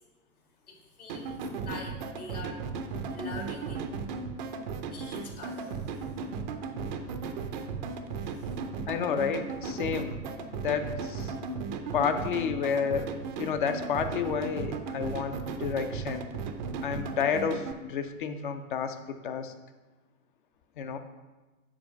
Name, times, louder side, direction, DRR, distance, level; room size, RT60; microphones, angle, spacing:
voice 1, 0.7-2.7 3.1-4.2 4.9-6.1 8.2-8.6, left 2 dB, 75° left, 1 dB, 1.9 m, -45 dB
sound 1, 1.1-17.7, right 4 dB, 35° right, 0.5 m, -36 dB
voice 2, 8.9-10.2 10.5-11.3 11.9-16.3 16.8-19.0 19.2-19.5 20.8-21.0, left 7 dB, 35° left, 8 dB, 0.4 m, -30 dB
7.4 x 4.3 x 5.2 m, 1.2 s
figure-of-eight pair, 110°, 44 cm